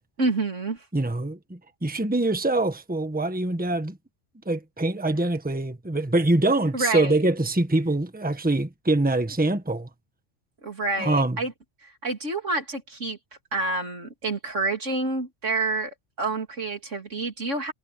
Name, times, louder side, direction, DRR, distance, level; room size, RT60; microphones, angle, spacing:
voice 1, 0.2-0.8 6.7-7.2 10.6-11.5 11.8-13.2 13.5-15.9 16.2-17.7, right 3 dB, 85° right, 3.7 m, -28 dB
voice 2, 0.9-4.0 4.4-9.9 11.0-11.4, right 2 dB, 10° right, 1.3 m, -24 dB
omnidirectional pair, 1.2 m